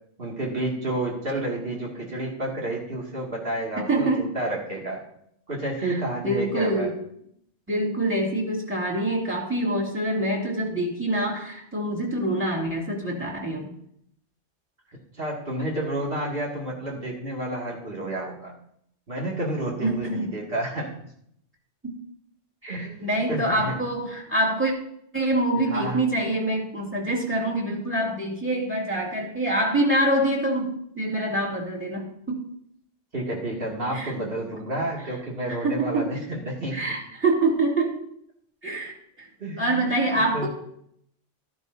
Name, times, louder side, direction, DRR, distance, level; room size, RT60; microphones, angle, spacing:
voice 1, 0.2-5.0 5.5-6.9 15.2-18.5 19.1-20.9 22.7-23.8 25.7-26.0 33.1-36.9 39.4-40.5, right 1 dB, 50° right, -3 dB, 2.6 m, -30 dB
voice 2, 3.8-4.3 5.8-6.0 6.2-7.0 7.7-13.7 19.8-20.4 21.8-21.9 22.6-24.7 25.1-32.5 33.9-34.1 35.5-36.2 36.7-38.0 38.6-38.9 39.2-39.3 39.6-40.5, right 1 dB, 10° right, -2 dB, 2.5 m, -25 dB
13.0 x 10.5 x 2.8 m, 0.72 s
omnidirectional pair, 1.2 m